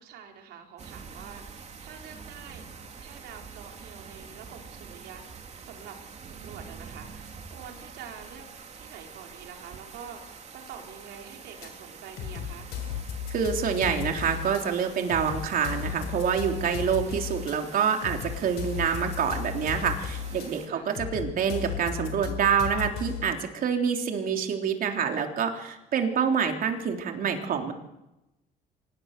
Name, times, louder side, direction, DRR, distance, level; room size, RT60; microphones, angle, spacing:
voice 1, 0.0-2.7 3.0-8.5 8.7-12.7 20.7-20.9, right 7 dB, 80° right, 2 dB, 4.3 m, -46 dB
sound 1, 0.8-20.7, right 5 dB, 40° right, 3.1 m, -46 dB
sound 2, 11.6-11.7 12.2-14.6 15.1-17.5 18.0-20.5 20.9-23.3, left 8 dB, 85° left, 4.4 m, -35 dB
voice 2, 13.3-27.7, right 7 dB, 55° right, 4 dB, 3.5 m, -27 dB
25.0 x 19.5 x 6.9 m, 0.93 s
cardioid pair, 110°, 17 cm